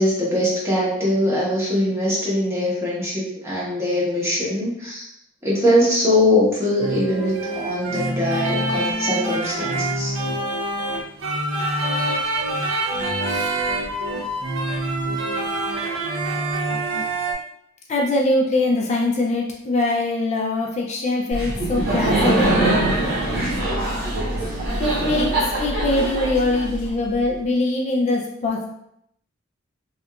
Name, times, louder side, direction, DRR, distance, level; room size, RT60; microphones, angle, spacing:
voice 1, 0.0-5.1 5.4-10.2, left 1 dB, 15° right, -7 dB, 0.7 m, -22 dB
sound 1, 6.8-17.3, right 1 dB, 70° right, 0.5 m, -25 dB
voice 2, 17.9-22.6 24.8-28.7, left 2 dB, 35° left, 0 dB, 0.3 m, -22 dB
Laughter, 21.3-27.1, right 1 dB, 50° right, 0.9 m, -22 dB
2.8 x 2.3 x 2.3 m, 0.75 s
head